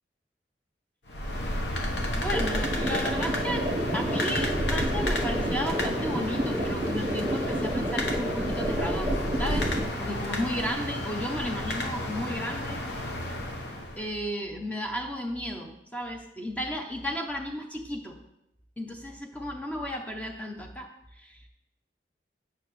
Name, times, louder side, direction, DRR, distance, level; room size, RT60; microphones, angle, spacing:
sound 1, 1.1-14.1, left 1 dB, 80° left, 0.9 m, -31 dB
voice 1, 2.1-3.7 3.9-9.1 9.4-9.7 10.0-12.8 14.0-18.2 18.8-21.5, equal, 10° left, 3 dB, 0.5 m, -34 dB
sound 2, 2.3-9.8, right 1 dB, 35° right, 0.9 m, -30 dB
8.7 x 5.8 x 3.1 m, 0.87 s
head